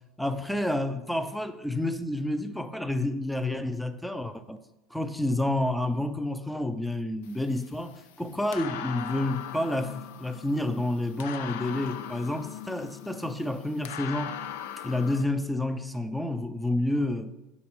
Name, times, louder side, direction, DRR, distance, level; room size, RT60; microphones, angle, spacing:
voice 1, 0.2-4.6 4.9-14.3 14.8-17.3, left 1 dB, ahead, 0.4 m, -29 dB
sound 1, 7.2-15.2, left 10 dB, 80° left, 0.4 m, -40 dB
4.9 x 4.2 x 4.6 m
supercardioid pair, 100°, 0 cm